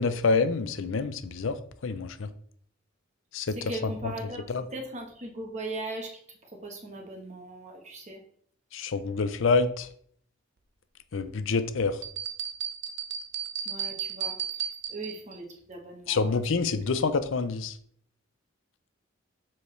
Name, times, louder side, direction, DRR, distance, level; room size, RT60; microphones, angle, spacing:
voice 1, 0.0-1.5 1.8-2.3 3.3-3.6 4.5-4.6 8.7-9.9 11.1-12.0 16.1-17.7, left 4 dB, 70° left, 12 dB, 0.5 m, -27 dB
voice 2, 3.5-6.1 6.5-8.2 13.6-16.4 16.7-16.8, right 2 dB, 35° right, 2 dB, 1.2 m, -39 dB
sound 1, 12.0-15.4, right 8 dB, 60° right, 0.6 m, -34 dB
7.0 x 4.8 x 3.2 m, 0.62 s
head